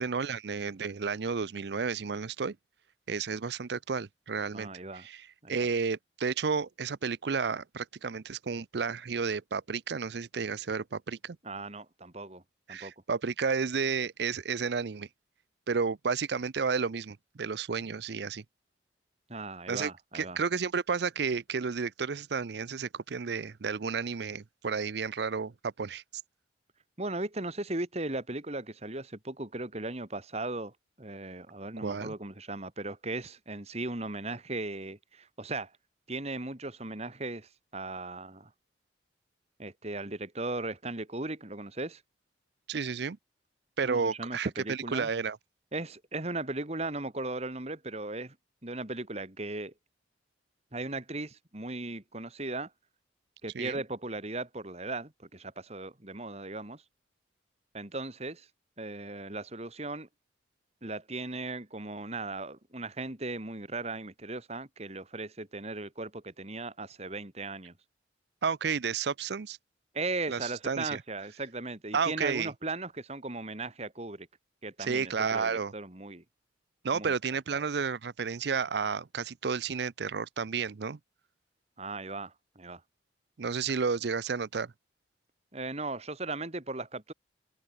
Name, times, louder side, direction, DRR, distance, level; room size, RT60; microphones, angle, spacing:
voice 1, 0.0-2.6 3.1-4.7 4.9-11.4 12.7-15.1 15.7-18.4 19.7-26.0 31.8-32.1 42.7-43.2 43.8-45.4 53.5-53.8 68.4-69.6 70.3-71.0 71.9-72.5 74.8-75.7 76.8-81.0 83.4-84.7, right 5 dB, 60° right, 0.5 m, -32 dB
voice 2, 4.5-5.1 5.4-5.7 11.4-12.4 12.7-12.9 19.3-20.4 27.0-35.7 36.1-38.5 39.6-42.0 43.8-45.1 45.7-48.4 48.6-49.7 50.7-52.7 53.4-56.8 57.7-58.5 58.8-60.1 60.8-67.7 69.9-74.3 74.6-76.2 76.9-77.1 77.5-77.7 81.8-82.8 85.5-87.1, right 2 dB, 35° right, 2.3 m, -37 dB
open air
head